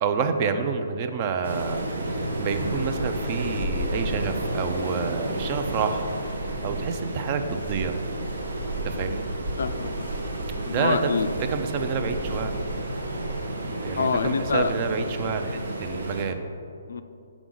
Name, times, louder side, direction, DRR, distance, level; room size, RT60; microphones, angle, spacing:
voice 1, 0.0-1.8 2.1-6.1 6.6-8.0 8.8-9.3 10.7-11.0 11.5-12.5 13.8-16.4, right 6 dB, 35° right, 8 dB, 0.4 m, -28 dB
Waves surf, 1.4-16.2, right 1 dB, 85° right, 0.9 m, -31 dB
voice 2, 9.6-10.1 10.6-11.3 14.0-14.7 16.9-17.0, left 5 dB, 70° left, 10 dB, 0.4 m, -26 dB
5.9 x 5.0 x 3.8 m, 2.6 s
hypercardioid pair, 155°, 0 cm